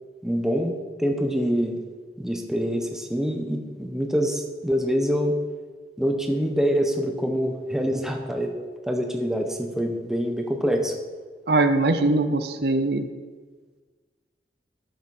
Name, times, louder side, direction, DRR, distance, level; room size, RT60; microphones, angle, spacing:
voice 1, 0.2-0.7 1.0-1.8 2.2-5.4 6.0-8.5 8.8-10.9, equal, 5° right, 2 dB, 1.0 m, -25 dB
voice 2, 11.5-13.0, right 2 dB, 60° right, 9 dB, 0.7 m, -21 dB
12.0 x 8.1 x 4.3 m, 1.4 s
head